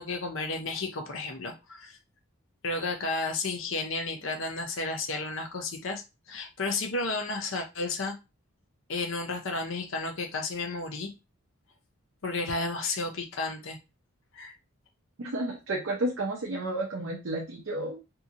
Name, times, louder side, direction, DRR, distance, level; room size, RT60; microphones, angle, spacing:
voice 1, 0.0-2.0 2.6-8.1 8.9-11.1 12.2-13.8 14.3-14.5, left 3 dB, 60° left, 4 dB, 0.6 m, -32 dB
voice 2, 15.2-18.0, right 1 dB, 65° right, -1 dB, 0.6 m, -31 dB
2.8 x 2.7 x 2.4 m, 0.27 s
head